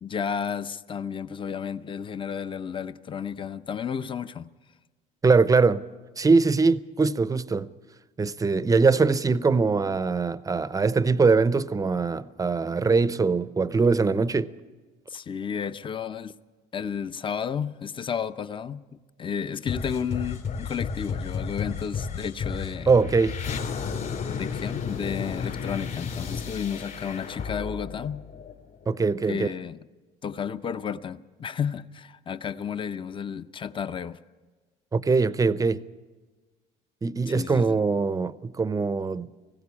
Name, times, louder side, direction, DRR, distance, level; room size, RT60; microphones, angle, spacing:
voice 1, 0.0-4.5 15.1-16.3 16.7-22.9 24.3-28.2 29.3-29.8 30.2-34.2 37.3-37.8, left 7 dB, 25° left, 0.6 m, -32 dB
voice 2, 5.2-5.8 6.2-7.7 8.2-14.5 22.9-23.3 28.9-29.5 34.9-35.8 37.0-39.3, right 4 dB, 15° right, 0.6 m, -22 dB
sound 1, 19.7-29.0, left 6 dB, 45° left, 3.4 m, -33 dB
19.5 x 16.0 x 8.5 m
supercardioid pair, 95°, 20 cm